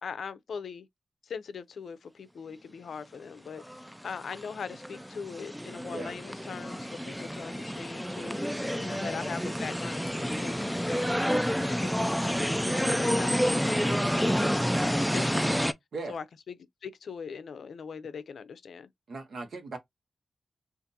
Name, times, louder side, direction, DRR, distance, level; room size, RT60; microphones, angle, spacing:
voice 1, 0.0-0.9 1.2-8.4 8.7-11.1 11.6-14.0 14.8-15.7 16.1-16.6 16.8-18.9, left 6 dB, 75° left, 0.5 m, -41 dB
sound 1, 3.6-15.7, equal, ahead, 0.3 m, -29 dB
voice 2, 19.1-19.8, right 3 dB, 70° right, 1.0 m, -38 dB
3.8 x 2.5 x 2.7 m
wide cardioid pair, 125°, 0 cm